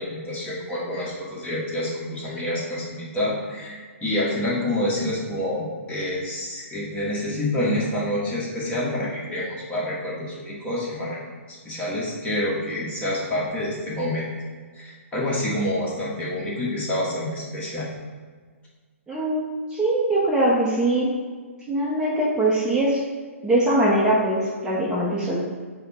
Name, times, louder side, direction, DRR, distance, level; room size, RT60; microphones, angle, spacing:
voice 1, 0.0-11.2 11.6-14.2 14.7-17.9, left 1 dB, 15° left, -6 dB, 1.3 m, -27 dB
voice 2, 19.1-21.1 21.7-23.0 23.4-25.4, right 1 dB, 10° right, -7 dB, 0.7 m, -22 dB
4.9 x 2.2 x 4.3 m, 1.5 s
hypercardioid pair, 125°, 8 cm